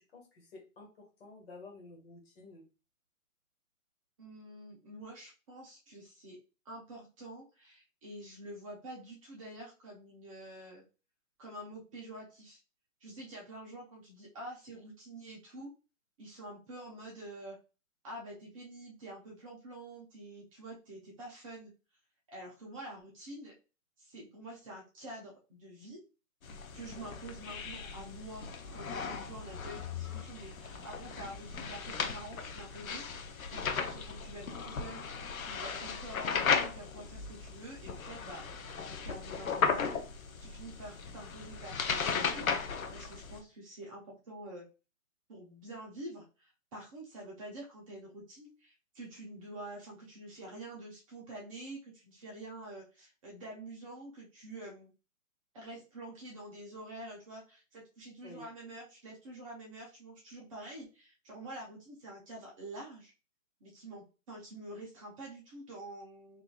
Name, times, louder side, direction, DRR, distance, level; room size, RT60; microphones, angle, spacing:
voice 1, 0.1-2.6 34.3-34.5 58.2-58.4, left 2 dB, 45° left, 1 dB, 1.5 m, -52 dB
voice 2, 4.2-6.4 6.6-10.8 11.4-12.6 13.0-15.7 16.2-17.6 18.0-21.7 22.3-23.5 24.0-26.0 26.7-35.0 35.4-38.4 38.8-40.0 40.4-41.7 42.0-44.7 45.3-54.9 55.5-63.1 63.6-66.4, right 1 dB, 25° right, -3 dB, 0.9 m, -47 dB
sound 1, 26.4-43.4, left 6 dB, 75° left, 0.8 m, -36 dB
3.8 x 2.7 x 2.3 m, 0.31 s
hypercardioid pair, 145°, 42 cm